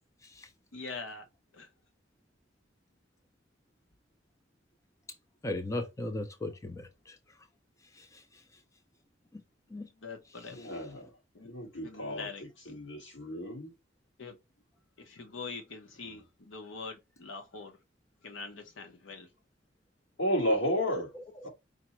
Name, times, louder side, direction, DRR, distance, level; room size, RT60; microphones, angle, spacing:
voice 1, 0.7-1.2 1.5-1.7 10.0-10.6 11.3-12.8 14.2-14.3 15.0-17.8 18.2-19.3, left 4 dB, 80° left, 0.8 m, -44 dB
voice 2, 5.4-7.2 7.9-8.4 9.3-9.4 9.7-9.9 10.5-10.8 21.1-21.2, left 2 dB, 15° left, 0.5 m, -38 dB
voice 3, 10.5-11.1 11.4-12.3 12.6-13.7 16.0-16.2 20.2-21.1 21.4-21.5, equal, 65° left, 1.8 m, -32 dB
5.1 x 2.1 x 4.3 m
head